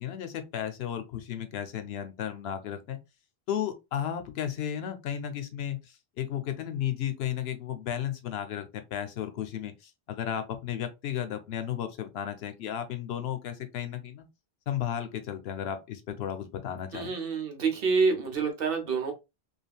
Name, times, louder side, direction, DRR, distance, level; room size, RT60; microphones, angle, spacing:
voice 1, 0.0-3.0 3.5-14.3 14.7-17.1, left 10 dB, 85° left, 0.8 m, -34 dB
voice 2, 16.9-19.1, right 4 dB, 65° right, 1.0 m, -27 dB
3.3 x 2.3 x 2.3 m
omnidirectional pair, 1.0 m